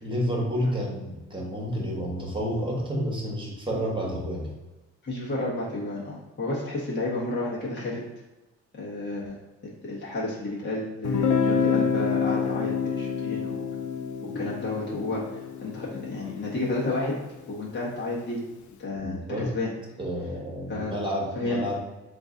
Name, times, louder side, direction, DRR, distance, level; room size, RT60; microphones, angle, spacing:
voice 1, 0.0-4.5 18.9-19.5 20.0-21.8, equal, 15° right, -2 dB, 1.3 m, -30 dB
voice 2, 5.0-8.0 8.7-9.4 9.6-13.7 14.3-17.2 17.5-18.4 18.8-19.7 20.7-21.0 21.4-21.6, left 2 dB, 35° left, -6 dB, 1.2 m, -31 dB
Guitar, 11.0-16.8, left 6 dB, 70° left, 0.5 m, -28 dB
3.8 x 2.6 x 3.7 m, 1.1 s
cardioid pair, 90°, 30 cm